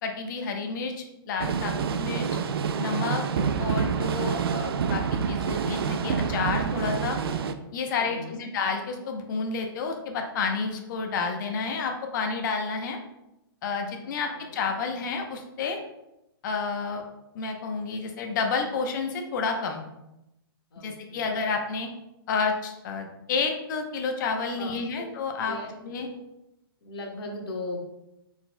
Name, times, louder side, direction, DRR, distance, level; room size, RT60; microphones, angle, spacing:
voice 1, 0.0-2.3 2.7-3.2 3.6-7.2 7.7-13.0 13.6-15.8 16.4-17.0 17.3-19.8 20.8-21.9 22.3-25.6 25.8-26.1, left 4 dB, 50° left, 3 dB, 0.8 m, -30 dB
sound 1, 1.4-7.5, right 6 dB, 75° right, 0.4 m, -27 dB
voice 2, 8.0-8.4 14.0-14.6 20.7-21.3 24.5-24.7 25.5-26.2 26.8-27.8, left 2 dB, 75° left, -1 dB, 1.3 m, -38 dB
4.4 x 3.9 x 2.2 m, 0.90 s
hypercardioid pair, 130°, 13 cm